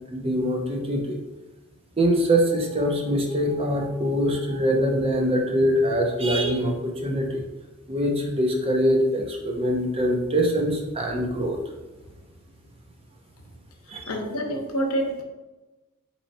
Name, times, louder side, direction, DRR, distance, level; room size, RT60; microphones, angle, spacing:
voice 1, 0.1-1.2 2.0-7.4 7.9-11.6 13.9-14.1, equal, 25° right, 1 dB, 0.7 m, -23 dB
voice 2, 14.1-15.2, equal, 75° left, 3 dB, 0.8 m, -27 dB
4.3 x 3.0 x 4.0 m, 1.1 s
head